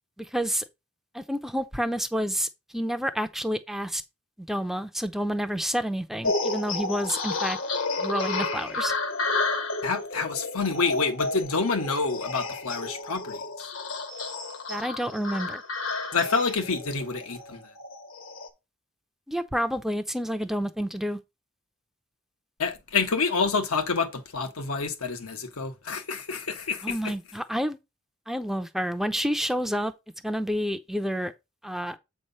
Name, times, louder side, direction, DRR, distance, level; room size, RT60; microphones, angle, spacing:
voice 1, 0.2-0.6 1.1-4.0 4.5-7.6 8.0-8.9 14.7-15.6 19.3-21.2 26.8-27.8 28.3-29.9 30.2-31.3 31.6-32.0, equal, ahead, 0.5 m, -29 dB
sound 1, 6.2-18.5, left 3 dB, 60° left, 1.2 m, -31 dB
voice 2, 9.8-13.7 16.1-17.6 22.6-27.1, left 4 dB, 85° left, 1.3 m, -28 dB
7.9 x 3.2 x 5.4 m
head